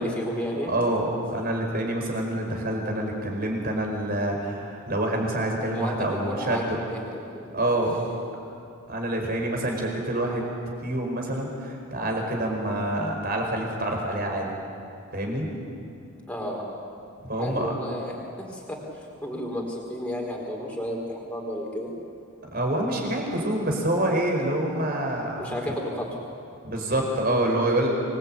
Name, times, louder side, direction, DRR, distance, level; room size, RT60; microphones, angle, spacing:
voice 1, 0.0-0.7 5.7-6.0 6.2-7.0 7.3-7.4 16.3-16.6 17.4-21.9 25.4-26.1, equal, 5° left, -2 dB, 4.2 m, -32 dB
voice 2, 0.7-6.8 7.5-8.0 8.9-10.4 10.8-14.5 15.1-15.5 17.3-17.7 22.5-25.4 26.6-27.9, right 1 dB, 45° right, 1 dB, 4.9 m, -27 dB
26.0 x 20.0 x 9.0 m, 2.6 s
head